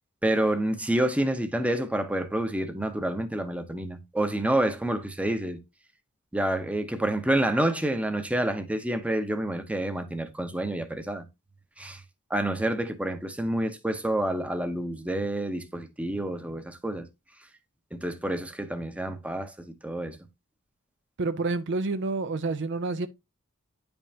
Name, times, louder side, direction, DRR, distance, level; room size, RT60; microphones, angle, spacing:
voice 1, 0.2-5.6 6.3-11.3 11.8-12.0 12.3-17.1 17.9-20.2, right 1 dB, 5° right, 0.8 m, -28 dB
voice 2, 21.2-23.1, right 3 dB, 55° right, 0.5 m, -28 dB
9.8 x 5.3 x 2.8 m
head